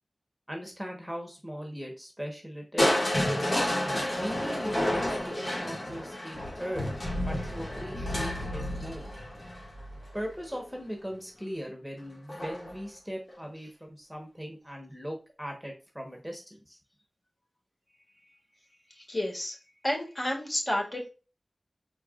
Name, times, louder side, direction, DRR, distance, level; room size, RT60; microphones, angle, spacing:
voice 1, 0.5-3.0 4.2-6.9 7.2-9.0 10.1-16.8, equal, 5° right, 2 dB, 1.2 m, -39 dB
Crushing, 2.8-10.7 12.3-12.8 13.3-13.4, left 1 dB, 60° left, 2.1 m, -30 dB
voice 2, 19.0-19.6 19.8-21.1, left 1 dB, 40° left, -1 dB, 2.0 m, -30 dB
4.5 x 4.5 x 2.4 m, 0.33 s
wide cardioid pair, 50°, 0 cm